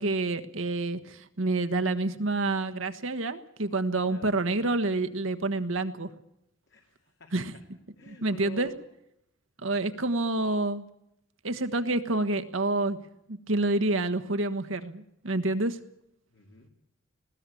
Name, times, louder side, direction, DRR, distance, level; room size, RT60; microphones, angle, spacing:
voice 1, 0.0-6.1 7.3-7.5 8.1-8.7 9.6-10.9 11.4-13.0 13.3-15.8, right 2 dB, 70° right, 8 dB, 1.4 m, -28 dB
voice 2, 6.7-7.3 8.0-8.8 16.3-16.7, left 5 dB, 65° left, 3 dB, 2.5 m, -48 dB
20.0 x 16.5 x 8.5 m, 0.80 s
head